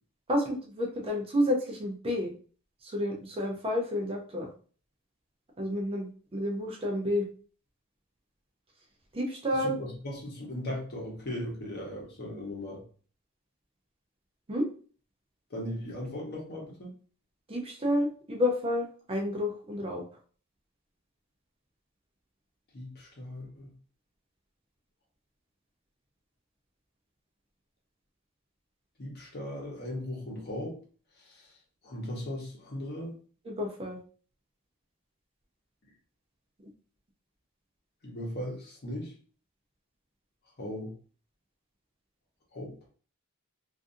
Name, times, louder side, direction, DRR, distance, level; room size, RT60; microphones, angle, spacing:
voice 1, 0.3-2.3 2.8-4.5 5.6-7.2 9.1-9.7 14.5-14.7 17.5-20.0 33.5-34.0, left 1 dB, 25° right, 1 dB, 0.5 m, -30 dB
voice 2, 9.6-12.8 15.5-16.9 22.7-23.7 29.0-30.8 31.2-31.6 31.8-33.1 38.0-39.1 40.6-40.9 42.5-42.7, left 1 dB, 50° left, -1 dB, 0.9 m, -38 dB
2.6 x 2.5 x 2.4 m, 0.41 s
head